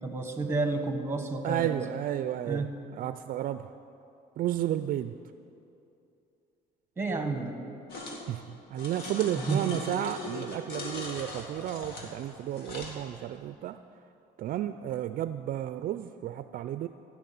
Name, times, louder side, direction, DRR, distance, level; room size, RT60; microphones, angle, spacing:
voice 1, 0.0-1.8 2.5-2.7 7.0-7.6 9.5-9.8, right 3 dB, 15° right, 6 dB, 1.4 m, -30 dB
voice 2, 1.4-3.7 4.4-5.2 8.3-13.8 14.4-16.9, right 12 dB, 55° right, 11 dB, 0.4 m, -32 dB
sound 1, 7.9-8.2 8.8-13.0, left 2 dB, 70° left, 2.2 m, -40 dB
15.5 x 6.1 x 9.3 m, 2.7 s
cardioid pair, 110°, 17 cm